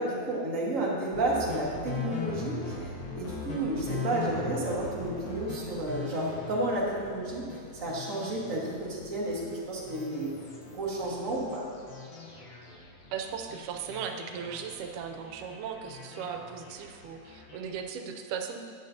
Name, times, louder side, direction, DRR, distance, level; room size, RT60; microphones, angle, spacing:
voice 1, 0.0-7.5 7.7-10.4 10.7-11.6, right 2 dB, 40° right, -4 dB, 1.2 m, -31 dB
sound 1, 1.1-17.8, left 4 dB, 50° left, 1.6 m, -40 dB
voice 2, 13.1-18.6, right 7 dB, 90° right, 5 dB, 2.2 m, -37 dB
11.5 x 9.2 x 2.8 m, 2.3 s
omnidirectional pair, 3.5 m